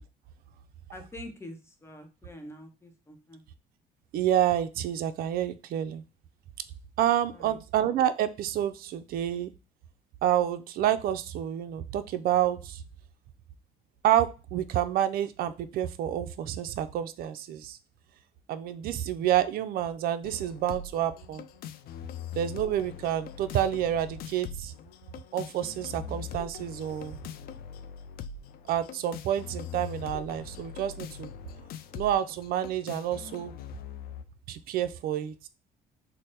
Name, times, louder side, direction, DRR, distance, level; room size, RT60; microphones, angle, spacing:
voice 1, 0.9-3.4 7.3-7.6, left 1 dB, 15° left, 4 dB, 0.8 m, -45 dB
voice 2, 4.1-6.0 7.0-9.5 10.2-12.8 14.0-17.8 18.5-21.5 22.4-24.7 25.3-27.2 28.7-31.3 31.9-33.5 34.5-35.5, right 11 dB, 60° right, 10 dB, 0.4 m, -28 dB
sound 1, 20.2-34.2, left 8 dB, 65° left, 0.4 m, -42 dB
3.2 x 2.0 x 4.2 m, 0.30 s
cardioid pair, 110°, 17 cm